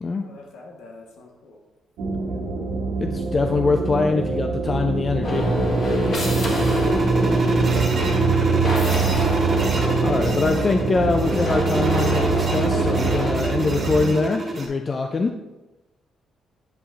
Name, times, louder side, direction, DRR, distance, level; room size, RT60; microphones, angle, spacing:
voice 1, 0.1-1.6 6.0-7.1 8.3-9.0 14.9-15.3, left 2 dB, 85° left, 0 dB, 1.3 m, -43 dB
sound 1, 2.0-14.1, right 5 dB, 90° right, 1.1 m, -25 dB
voice 2, 3.0-5.5 10.0-15.3, left 3 dB, 35° left, 5 dB, 0.4 m, -23 dB
sound 2, 5.2-13.3, right 1 dB, 50° left, 1.5 m, -25 dB
sound 3, 5.2-14.7, right 2 dB, 45° right, 1.6 m, -27 dB
8.1 x 5.6 x 2.5 m, 1.0 s
cardioid pair, 90°, 0 cm